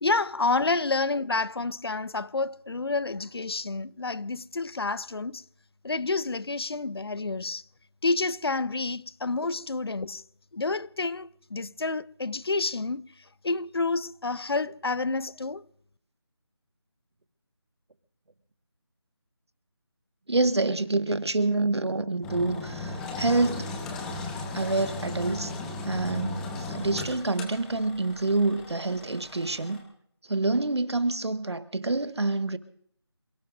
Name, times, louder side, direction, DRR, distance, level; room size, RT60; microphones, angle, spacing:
voice 1, 0.0-5.4 5.8-7.6 8.0-10.2 10.5-15.6, left 3 dB, 65° left, 0.7 m, -29 dB
voice 2, 20.3-23.7 24.5-25.5 25.8-29.8 30.3-32.6, right 2 dB, 75° right, 1.6 m, -27 dB
Engine, 22.2-29.8, left 3 dB, 5° left, 0.9 m, -36 dB
28.0 x 17.5 x 2.6 m
figure-of-eight pair, 165°, 14 cm